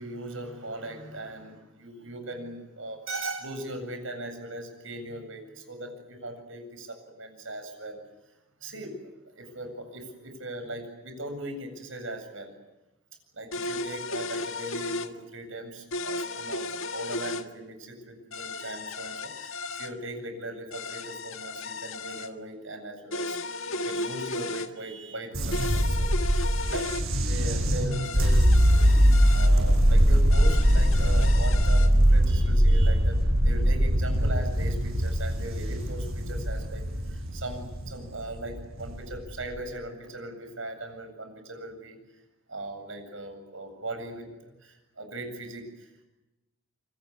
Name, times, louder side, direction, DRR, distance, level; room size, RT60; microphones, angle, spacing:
voice 1, 0.0-8.0 8.6-9.0 9.3-12.5 13.3-23.4 23.7-26.9 27.3-28.7 29.0-29.1 29.3-33.2 33.4-42.2 42.5-45.9, right 1 dB, 70° right, 6 dB, 7.9 m, -39 dB
sound 1, 13.5-15.1 15.9-17.4 18.3-19.9 20.7-22.3 23.1-24.7 25.5-27.0 27.9-29.5 30.3-31.9, left 3 dB, 75° left, 1.8 m, -35 dB
sound 2, 25.3-39.5, equal, 85° right, 6.8 m, -22 dB
28.0 x 25.0 x 8.4 m, 0.99 s
head